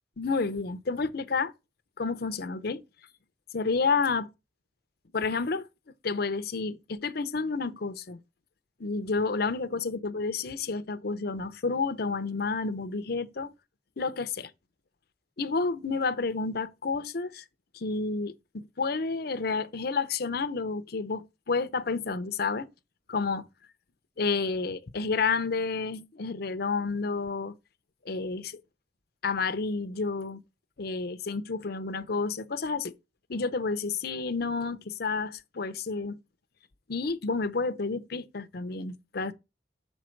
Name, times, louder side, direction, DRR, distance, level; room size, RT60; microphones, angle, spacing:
voice 1, 0.2-1.5 2.0-2.8 3.5-4.3 5.1-5.7 6.0-8.2 8.8-13.5 14.0-14.5 15.4-17.4 17.7-22.7 23.1-23.5 24.2-27.5 28.1-28.6 29.2-30.4 30.8-32.9 33.3-36.2 36.9-39.3, left 4 dB, 55° left, 0.6 m, -30 dB
6.3 x 4.5 x 4.5 m
head